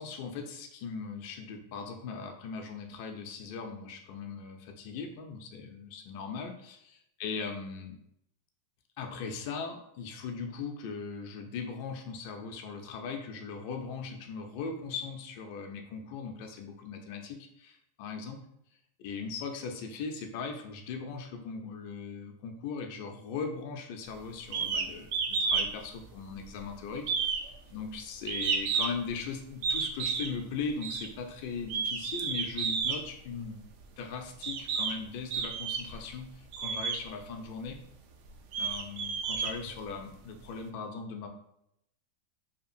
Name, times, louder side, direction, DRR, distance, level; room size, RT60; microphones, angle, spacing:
voice 1, 0.0-8.0 9.0-18.4 19.0-27.4 27.7-33.6 34.0-37.8 38.6-41.3, left 5 dB, 55° left, 4 dB, 0.4 m, -39 dB
sound 1, 24.5-24.9 25.1-25.7 26.0-26.6 27.0-29.1 29.6-30.3 30.8-31.1 31.6-33.0 33.8-33.9 34.4-35.0 35.3-36.0 36.5-37.0 37.6-37.7 38.3-40.1, right 5 dB, 50° right, 0.4 m, -31 dB
2.8 x 2.3 x 2.6 m, 0.76 s
supercardioid pair, 140°, 0 cm